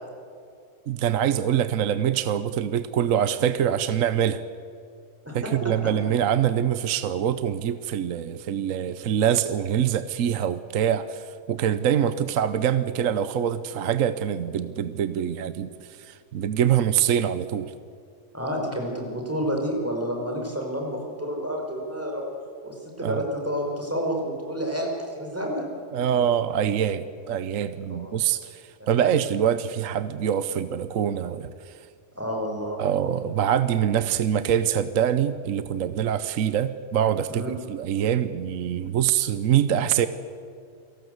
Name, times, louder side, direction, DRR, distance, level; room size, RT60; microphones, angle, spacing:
voice 1, 0.9-4.4 5.3-15.7 16.0-17.7 23.0-23.2 25.9-28.6 28.9-31.7 32.8-40.1, right 9 dB, 60° right, 13 dB, 1.0 m, -24 dB
voice 2, 18.3-22.2 22.6-25.7 27.9-28.1 28.8-28.9 32.2-32.8 37.3-37.5, equal, 10° right, 0 dB, 5.1 m, -29 dB
28.5 x 18.5 x 8.0 m, 2.3 s
omnidirectional pair, 1.8 m